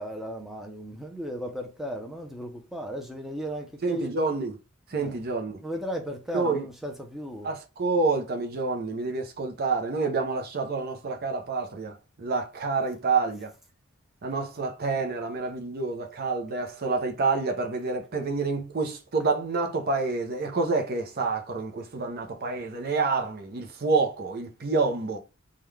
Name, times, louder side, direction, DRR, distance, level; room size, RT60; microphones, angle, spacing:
voice 1, 0.0-4.1 5.0-5.1 5.6-7.5, equal, ahead, 0.6 m, -35 dB
voice 2, 3.8-4.5 4.9-5.6 6.3-6.6 7.4-13.5 14.2-25.2, right 3 dB, 45° right, 0.7 m, -28 dB
3.7 x 2.3 x 3.2 m
head